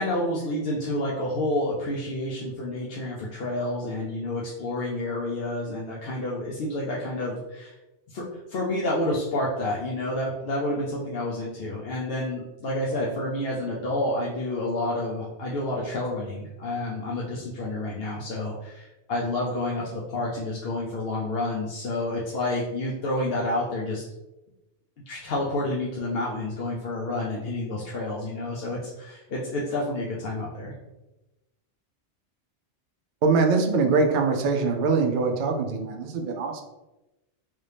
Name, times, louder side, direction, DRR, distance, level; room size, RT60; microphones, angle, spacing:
voice 1, 0.0-7.7 8.1-24.0 25.1-30.7, left 1 dB, 65° left, -5 dB, 0.8 m, -29 dB
voice 2, 33.2-36.6, right 4 dB, 55° right, 3 dB, 0.6 m, -23 dB
3.3 x 2.7 x 3.3 m, 1.0 s
omnidirectional pair, 1.2 m